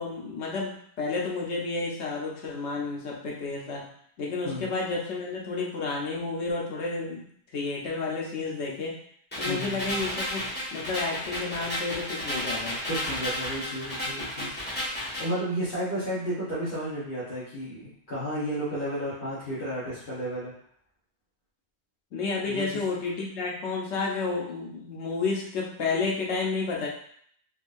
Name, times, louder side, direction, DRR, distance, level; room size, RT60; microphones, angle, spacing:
voice 1, 0.0-3.9 4.2-9.0 9.4-12.8 22.1-26.9, left 3 dB, 85° left, -2 dB, 1.1 m, -31 dB
sound 1, 9.3-15.3, left 1 dB, 10° left, 1.2 m, -33 dB
voice 2, 9.4-10.0 12.8-14.6 14.8-20.5 22.5-22.8, equal, 50° left, -11 dB, 1.2 m, -33 dB
4.1 x 2.5 x 2.5 m, 0.64 s
omnidirectional pair, 1.1 m